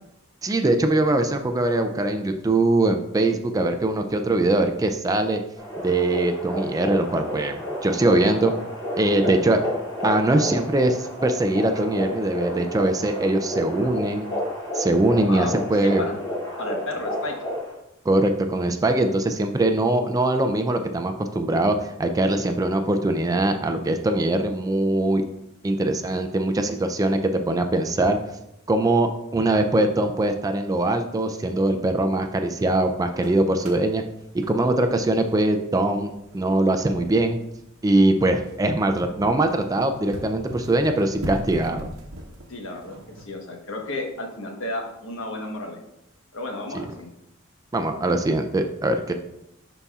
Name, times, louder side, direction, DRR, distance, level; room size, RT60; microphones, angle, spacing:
voice 1, 0.4-5.4 5.8-8.5 9.0-9.6 10.0-14.3 14.7-16.0 18.1-25.2 25.6-28.2 28.7-34.0 34.5-37.4 37.8-41.9 46.7-46.9 47.7-49.1, right 2 dB, 15° right, 6 dB, 0.3 m, -22 dB
sound 1, 5.6-17.7, left 1 dB, 20° left, 2.4 m, -31 dB
voice 2, 15.8-16.2 16.6-17.3 42.5-45.8 46.3-47.1, left 2 dB, 65° left, 2 dB, 1.1 m, -32 dB
sound 2, 32.9-43.3, equal, 80° right, 0.9 m, -40 dB
11.0 x 4.1 x 2.4 m, 0.84 s
head